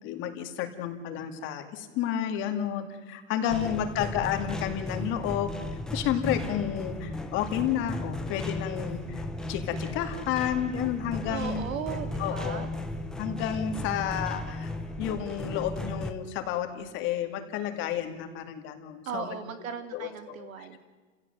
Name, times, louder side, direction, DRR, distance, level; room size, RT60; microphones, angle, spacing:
voice 1, 0.0-5.5 5.9-9.2 9.5-11.6 12.2-12.7 13.2-14.7 15.0-19.3 19.9-20.8, left 10 dB, 30° left, 7 dB, 2.3 m, -31 dB
voice 2, 3.4-4.0 11.2-12.7 19.0-20.8, right 7 dB, 85° right, 9 dB, 3.2 m, -38 dB
sound 1, 3.5-16.1, left 2 dB, ahead, 0.8 m, -35 dB
29.5 x 17.0 x 9.3 m, 1.4 s
supercardioid pair, 165°, 40 cm